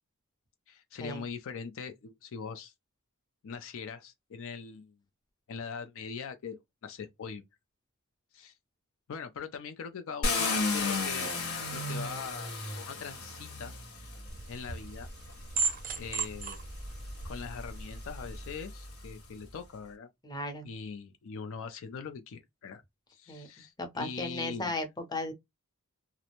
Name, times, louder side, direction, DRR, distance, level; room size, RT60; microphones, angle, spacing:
voice 1, 0.7-2.7 3.4-4.9 5.5-7.4 8.3-8.5 9.1-11.3 11.7-13.7 14.5-15.1 16.0-16.6 17.2-20.1 20.6-22.8 23.1-24.7, left 6 dB, 65° left, 0.4 m, -42 dB
Car, 10.2-14.3 15.3-15.4 15.9-19.2, left 3 dB, 80° left, 1.2 m, -34 dB
sound 1, 14.3-18.5, right 4 dB, 40° right, 0.4 m, -37 dB
voice 2, 20.2-20.7 23.3-23.5 23.8-25.3, left 2 dB, 20° left, 0.6 m, -35 dB
2.5 x 2.0 x 2.9 m
head